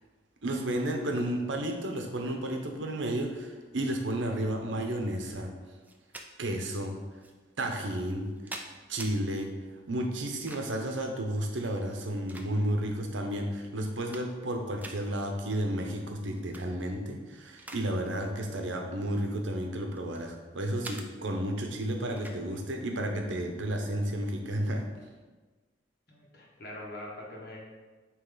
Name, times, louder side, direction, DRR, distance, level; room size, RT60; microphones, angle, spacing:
voice 1, 0.4-5.5 6.4-7.0 7.6-8.3 8.9-9.5 9.9-24.8, right 1 dB, 75° right, 3 dB, 0.8 m, -32 dB
sound 1, 5.8-6.3 7.2-7.3 8.1-9.1 10.2-10.8 11.8-12.9 13.4-13.5 13.8-14.5 14.8-15.0 16.3-16.7 17.1-17.9 18.2-18.4 19.2-20.3 20.8-21.1 22.2-22.4, right 2 dB, 10° right, 0.4 m, -45 dB
voice 2, 22.2-22.6 26.1-27.6, left 1 dB, 55° left, -3 dB, 1.5 m, -44 dB
8.9 x 3.1 x 3.9 m, 1.3 s
head